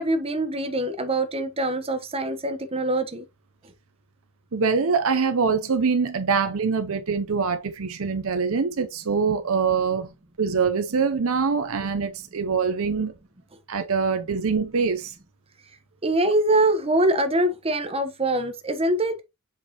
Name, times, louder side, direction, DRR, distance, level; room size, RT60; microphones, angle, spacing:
voice 1, 0.0-3.3 16.0-19.2, right 1 dB, 25° right, 1.1 m, -24 dB
voice 2, 4.5-13.1 13.7-15.1, right 5 dB, 65° right, 0.7 m, -24 dB
7.6 x 5.2 x 3.0 m
head